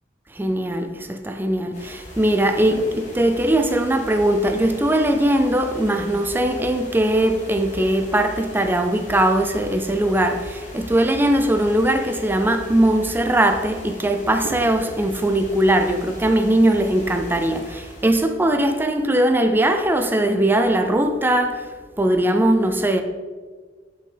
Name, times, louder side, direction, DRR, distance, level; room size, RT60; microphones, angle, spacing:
voice 1, 0.3-21.7 22.0-23.0, right 1 dB, 10° right, 0.4 m, -20 dB
sound 1, 1.7-18.5, equal, 40° left, 1.9 m, -38 dB
6.4 x 5.7 x 3.3 m
head